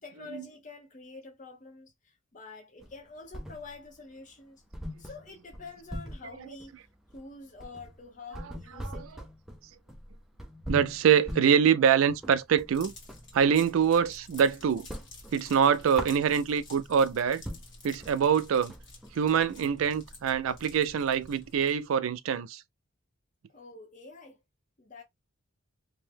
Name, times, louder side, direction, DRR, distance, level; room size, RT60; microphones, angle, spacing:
voice 1, 0.0-4.6 5.0-6.7 7.1-9.2 23.5-24.4 24.8-25.0, left 3 dB, 35° left, 0.6 m, -47 dB
sound 1, 2.8-4.0 4.3-4.4 4.7-13.3 13.7-14.5 14.7-16.7 17.2-17.3 17.4-21.6, equal, ahead, 0.3 m, -42 dB
voice 2, 10.7-12.9 13.3-14.9 15.3-17.4 17.8-18.7 19.1-22.6, right 7 dB, 80° right, 0.4 m, -24 dB
sound 2, 12.7-21.9, left 2 dB, 60° left, 1.4 m, -50 dB
2.7 x 2.1 x 3.2 m
head